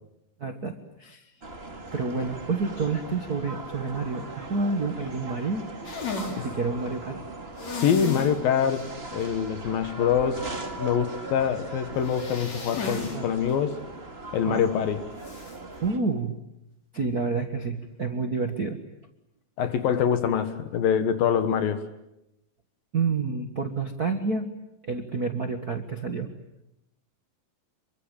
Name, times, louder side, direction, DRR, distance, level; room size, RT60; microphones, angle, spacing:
voice 1, 0.4-1.3 1.9-5.6 6.2-7.2 13.1-13.3 14.5-14.7 15.8-16.4 16.9-18.8 22.9-24.5 24.8-26.3, right 4 dB, 55° right, 5 dB, 1.0 m, -29 dB
sound 1, 1.4-16.0, right 2 dB, 20° right, 2.0 m, -40 dB
sound 2, 5.8-6.4 7.6-8.3 8.7-8.8 9.2-9.3 12.0-13.2 13.5-13.6 15.2-15.6, left 3 dB, 50° left, 5.0 m, -34 dB
voice 2, 7.7-10.5 10.8-13.8 14.3-15.1 19.6-21.8, left 8 dB, 75° left, 10 dB, 3.2 m, -25 dB
27.5 x 23.5 x 9.1 m, 0.86 s
omnidirectional pair, 4.2 m